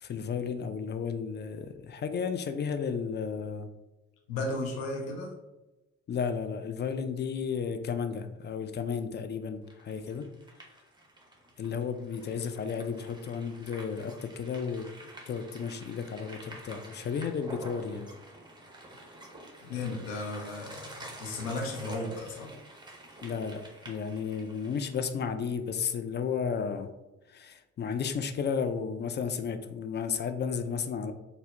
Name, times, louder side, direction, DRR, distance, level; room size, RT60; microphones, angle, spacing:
voice 1, 0.0-3.7 6.1-10.3 11.6-14.9 15.3-18.1 23.2-26.9 27.3-31.1, left 6 dB, 35° left, 8 dB, 0.4 m, -33 dB
voice 2, 4.3-5.3 19.6-22.5, left 2 dB, 85° left, 1 dB, 0.6 m, -35 dB
sound 1, 9.7-25.1, right 1 dB, 15° right, 0.9 m, -49 dB
4.1 x 2.1 x 2.5 m, 1.0 s
hypercardioid pair, 55°, 32 cm